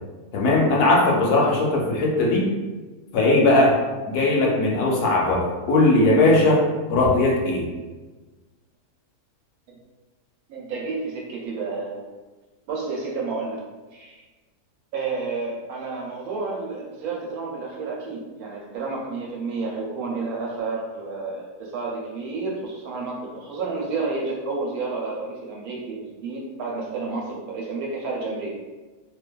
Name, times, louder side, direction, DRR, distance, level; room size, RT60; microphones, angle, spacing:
voice 1, 0.3-2.5 3.1-3.8 4.1-6.6 6.9-7.7, left 2 dB, 75° left, -2 dB, 1.1 m, -19 dB
voice 2, 10.5-12.0 12.7-13.6 13.9-14.2 14.9-28.5, right 3 dB, 70° right, -2 dB, 1.0 m, -30 dB
2.6 x 2.3 x 2.2 m, 1.3 s
omnidirectional pair, 1.7 m